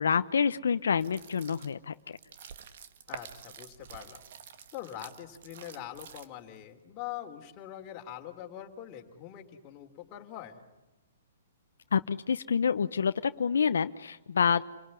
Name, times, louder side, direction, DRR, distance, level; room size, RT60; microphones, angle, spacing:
voice 1, 0.0-1.9 11.9-14.6, left 6 dB, 85° left, 11 dB, 0.8 m, -27 dB
sound 1, 0.9-6.6, right 8 dB, 55° right, 1.9 m, -48 dB
voice 2, 3.1-4.2 4.7-10.6, left 12 dB, 30° left, 3 dB, 3.1 m, -43 dB
28.5 x 18.0 x 9.8 m, 1.1 s
hypercardioid pair, 150°, 0 cm